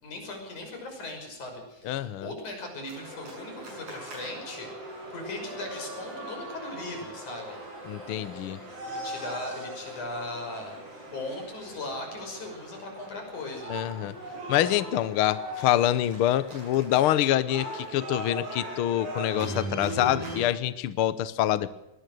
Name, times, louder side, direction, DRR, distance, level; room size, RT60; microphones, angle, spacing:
voice 1, 0.0-7.6 8.8-10.8 11.1-13.8, left 2 dB, 85° left, 3 dB, 7.4 m, -38 dB
voice 2, 1.8-2.3 7.9-8.6 13.7-14.2 14.5-21.7, left 12 dB, 65° left, 15 dB, 1.4 m, -26 dB
sound 1, 2.9-20.4, right 1 dB, 85° right, 8.9 m, -39 dB
22.0 x 18.5 x 6.4 m, 0.93 s
omnidirectional pair, 3.4 m